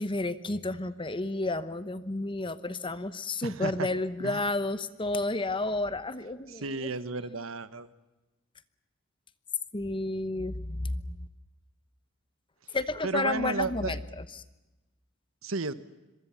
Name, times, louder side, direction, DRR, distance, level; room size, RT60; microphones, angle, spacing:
voice 1, 0.0-6.9 9.7-11.2 12.7-14.2, left 2 dB, 25° left, 13 dB, 1.0 m, -31 dB
voice 2, 3.4-3.9 4.2-4.5 6.5-7.9 13.0-14.0 15.4-15.7, right 3 dB, 75° right, 13 dB, 1.3 m, -33 dB
26.0 x 23.5 x 7.2 m, 1.1 s
head